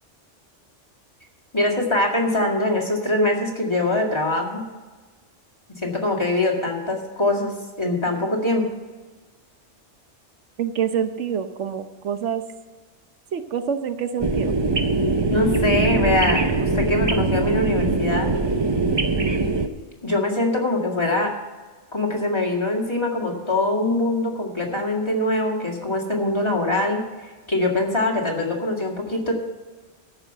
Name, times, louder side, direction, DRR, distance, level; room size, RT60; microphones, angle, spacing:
voice 1, 1.5-4.7 5.8-8.6 15.3-18.3 20.0-21.3 21.9-27.0 27.5-29.3, left 2 dB, 25° left, -1 dB, 2.0 m, -23 dB
voice 2, 10.6-12.4 13.3-14.5, right 8 dB, 80° right, 9 dB, 1.1 m, -26 dB
sound 1, 14.2-19.7, right 3 dB, 30° right, 0.6 m, -22 dB
14.0 x 5.6 x 7.8 m, 1.3 s
omnidirectional pair, 1.2 m